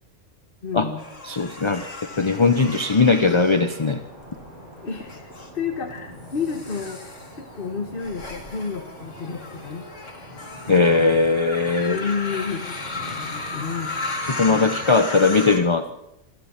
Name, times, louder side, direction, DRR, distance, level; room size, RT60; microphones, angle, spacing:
voice 1, 0.6-1.1 4.8-7.1 7.4-9.9 10.7-11.3 11.8-12.7 13.1-14.0 14.4-14.9, left 5 dB, 45° left, 5 dB, 1.6 m, -31 dB
sound 1, 1.0-4.4 5.0-5.5 6.2-15.6, left 3 dB, 75° left, 3.0 m, -35 dB
voice 2, 1.3-1.8 2.2-4.0 10.7-12.0 14.4-15.9, left 4 dB, 25° left, 9 dB, 0.8 m, -19 dB
sound 2, 2.1-14.9, equal, 40° right, 7.7 m, -43 dB
26.0 x 14.0 x 7.3 m, 0.92 s
omnidirectional pair, 1.3 m